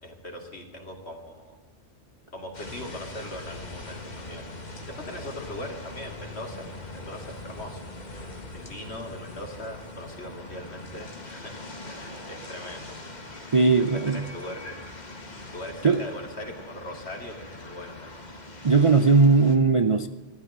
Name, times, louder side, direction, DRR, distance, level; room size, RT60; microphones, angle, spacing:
voice 1, 0.0-1.6 2.3-4.4 5.0-6.7 6.9-7.8 8.5-13.2 14.1-14.8 15.5-18.2, left 1 dB, 60° left, 3 dB, 3.0 m, -40 dB
sound 1, 2.5-19.6, left 2 dB, 35° left, 1.9 m, -42 dB
voice 2, 13.5-14.2 15.8-16.0 18.6-20.1, right 4 dB, 35° right, 9 dB, 0.6 m, -19 dB
15.0 x 12.5 x 7.4 m, 1.2 s
omnidirectional pair, 1.2 m